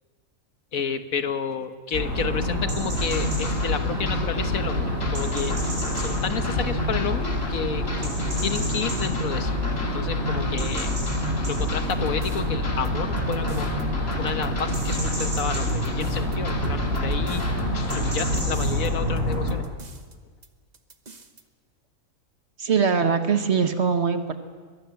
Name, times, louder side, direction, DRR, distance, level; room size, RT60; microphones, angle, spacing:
voice 1, 0.7-5.6 5.9-8.1 8.4-10.9 11.4-13.7 14.1-19.6, left 6 dB, 85° left, 9 dB, 1.7 m, -31 dB
sound 1, 1.9-19.6, equal, 80° right, 7.6 m, -26 dB
sound 2, 2.9-18.4, left 2 dB, 50° left, 2.2 m, -38 dB
sound 3, 11.6-13.8 14.1-14.9 15.2-18.9 19.2-20.1 20.4-20.5 20.7-21.4, right 2 dB, 35° right, 1.3 m, -38 dB
voice 2, 22.6-24.4, right 6 dB, 55° right, 8 dB, 1.6 m, -22 dB
22.5 x 20.5 x 7.1 m, 1.5 s
omnidirectional pair, 1.4 m